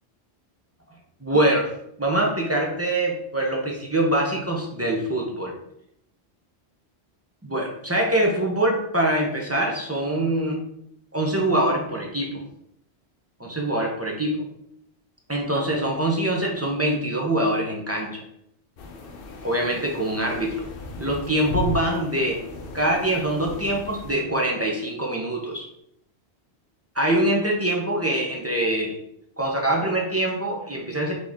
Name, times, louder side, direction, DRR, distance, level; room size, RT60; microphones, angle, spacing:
voice 1, 1.2-1.7 2.0-5.5 7.4-10.6 11.1-12.4 13.4-14.4 15.3-18.2 19.4-20.6 21.0-22.4 22.7-25.7 26.9-29.0 29.4-31.1, right 1 dB, 15° right, -1 dB, 0.6 m, -24 dB
sound 1, 18.8-24.1, left 2 dB, 60° left, 0.8 m, -36 dB
4.3 x 3.1 x 3.5 m, 0.74 s
omnidirectional pair, 1.1 m